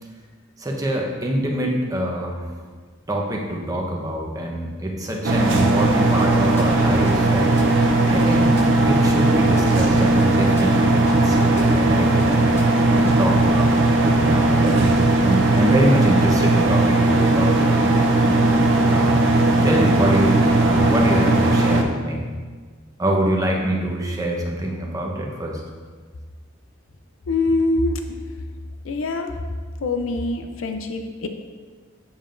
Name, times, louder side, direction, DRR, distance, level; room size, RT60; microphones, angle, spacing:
voice 1, 0.6-2.5 3.1-7.5 8.1-8.6 8.8-12.5 12.9-17.7 18.8-19.4 19.6-22.2 23.0-25.6, right 1 dB, 20° right, 0 dB, 0.9 m, -25 dB
sound 1, 5.2-21.8, right 2 dB, 65° right, 0.7 m, -18 dB
Drum kit / Bass drum, 5.6-5.7 6.1-7.7 8.1-9.7 10.1-11.7 12.2-13.5, equal, 15° left, 0.8 m, -37 dB
voice 2, 14.7-15.0 27.3-28.0 28.8-29.3 29.8-31.3, left 2 dB, 80° left, 6 dB, 0.6 m, -24 dB
7.3 x 7.1 x 2.5 m, 1.5 s
head